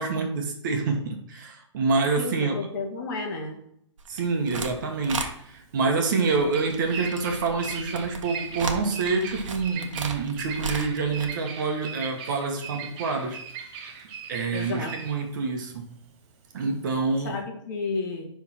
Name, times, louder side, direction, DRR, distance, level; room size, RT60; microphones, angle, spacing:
voice 1, 0.0-2.6 4.1-13.4 14.3-15.9 16.5-17.4, right 4 dB, 40° right, 3 dB, 1.3 m, -27 dB
voice 2, 2.2-3.6 14.5-14.9 17.2-18.3, left 3 dB, 40° left, 1 dB, 1.4 m, -32 dB
sound 1, 4.0-4.7 5.0-5.3 6.1-11.2, right 4 dB, 80° right, 1.3 m, -35 dB
Bird vocalization bird call bird song, 4.1-17.4, right 6 dB, 20° right, 0.8 m, -40 dB
11.0 x 3.6 x 4.3 m, 0.72 s
hypercardioid pair, 160°, 16 cm